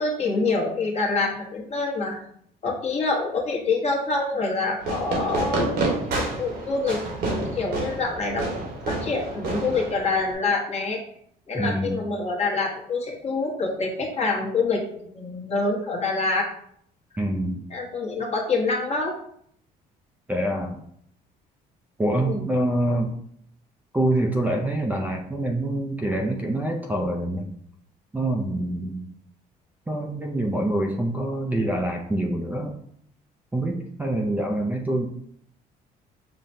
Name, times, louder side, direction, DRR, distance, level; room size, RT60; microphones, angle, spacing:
voice 1, 0.0-2.2 2.6-8.5 8.9-11.0 11.5-16.5 17.7-19.1 22.3-22.4, left 3 dB, 40° left, -1 dB, 1.0 m, -26 dB
Fireworks, 4.8-10.3, right 2 dB, 70° right, 1.1 m, -29 dB
voice 2, 11.5-12.0 17.2-17.7 20.3-20.8 22.0-23.1 23.9-27.5 28.1-29.1 29.9-32.8 33.5-35.1, right 1 dB, 10° right, 1 dB, 0.4 m, -25 dB
5.5 x 2.1 x 2.6 m, 0.67 s
cardioid pair, 110°, 17 cm